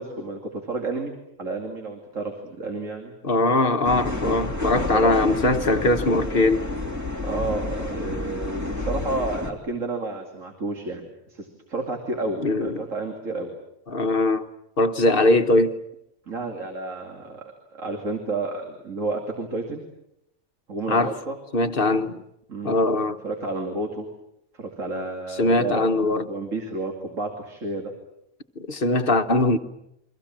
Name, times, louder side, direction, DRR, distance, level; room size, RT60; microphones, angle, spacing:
voice 1, 0.0-3.1 4.9-5.1 7.2-13.5 16.3-19.9 20.7-21.3 22.5-22.8 23.2-24.1 24.5-25.9 26.3-27.9, right 3 dB, 65° right, 2.9 m, -31 dB
voice 2, 3.2-6.7 12.4-12.8 13.9-14.5 14.8-15.8 20.9-21.2 21.5-22.2 22.6-23.2 25.4-26.3 28.6-29.6, left 2 dB, 45° left, 1.3 m, -21 dB
sound 1, 3.8-9.5, left 2 dB, 10° right, 2.5 m, -30 dB
29.5 x 23.5 x 7.5 m
omnidirectional pair, 1.4 m